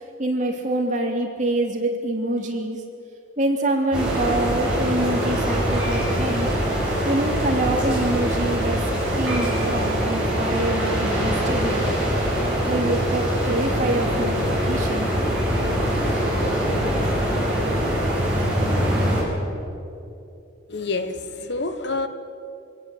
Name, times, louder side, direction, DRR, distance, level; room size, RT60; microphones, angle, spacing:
voice 1, 0.2-2.8 3.4-6.5 7.0-8.9 9.1-11.8 12.6-15.1, right 2 dB, 40° right, 0 dB, 3.0 m, -25 dB
sound 1, 3.9-19.2, equal, 5° right, 7.0 m, -23 dB
voice 2, 20.7-22.1, left 3 dB, 55° left, 10 dB, 1.2 m, -27 dB
24.5 x 17.0 x 8.0 m, 2.7 s
head